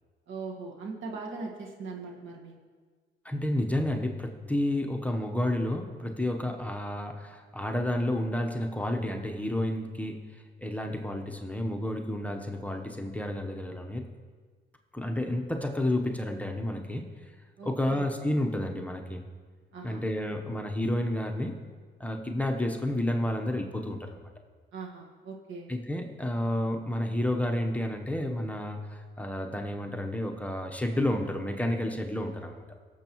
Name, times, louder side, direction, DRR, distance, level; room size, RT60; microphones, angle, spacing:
voice 1, 0.3-2.5 17.6-18.1 19.7-20.0 24.7-25.7, right 4 dB, 75° right, 0 dB, 1.6 m, -40 dB
voice 2, 3.2-10.2 10.6-14.0 14.9-17.1 17.6-19.2 19.8-21.5 22.0-24.2 25.7-32.6, left 1 dB, 5° left, 2 dB, 0.9 m, -30 dB
18.0 x 7.1 x 3.0 m, 1.5 s
cardioid pair, 90°, 20 cm